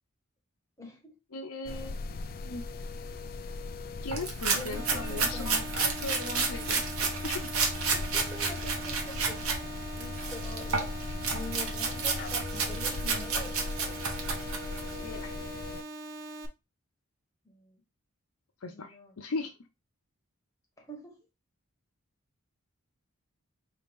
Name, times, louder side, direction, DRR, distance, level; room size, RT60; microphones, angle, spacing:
voice 1, 0.8-1.1 4.5-5.9 7.9-10.9 11.3-14.0 17.4-17.8 18.7-19.2 20.8-21.2, left 1 dB, 15° left, 0 dB, 1.3 m, -45 dB
voice 2, 1.3-2.6 4.0-7.5 15.0-15.5 18.6-19.5, left 3 dB, 90° left, 3 dB, 0.7 m, -39 dB
sound 1, 1.7-15.8, left 3 dB, 40° left, 0.3 m, -39 dB
sound 2, 4.1-9.6 10.0-14.9, right 5 dB, 75° right, 1.1 m, -31 dB
sound 3, 4.7-16.5, right 2 dB, 55° right, 0.6 m, -42 dB
5.0 x 2.8 x 3.5 m, 0.25 s
head